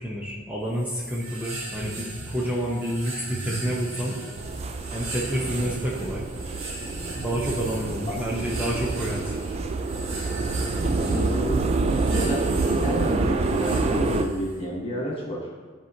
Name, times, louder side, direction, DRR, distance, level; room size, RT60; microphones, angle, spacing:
voice 1, 0.0-4.2 4.9-6.2 7.2-9.3, equal, 10° right, -5 dB, 0.7 m, -29 dB
sound 1, 0.8-14.6, right 2 dB, 90° right, 1.5 m, -36 dB
sound 2, 4.4-14.2, right 3 dB, 30° right, 0.3 m, -27 dB
voice 2, 8.1-8.5 10.8-11.6 12.1-12.4 12.8-15.5, equal, 25° left, -3 dB, 1.4 m, -30 dB
12.5 x 4.4 x 2.8 m, 1.5 s
head